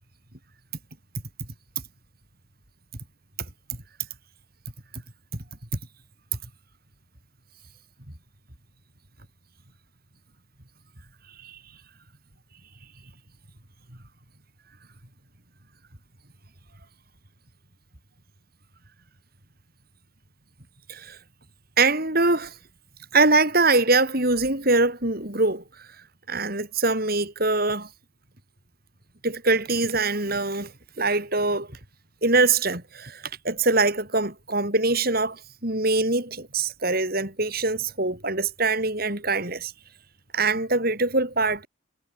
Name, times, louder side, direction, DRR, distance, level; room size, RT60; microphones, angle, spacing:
voice 1, 21.8-22.6 23.1-25.9 26.3-27.9 29.2-30.7 31.0-31.8 32.2-39.7 40.3-41.7, right 3 dB, 45° right, 5.5 m, -23 dB
head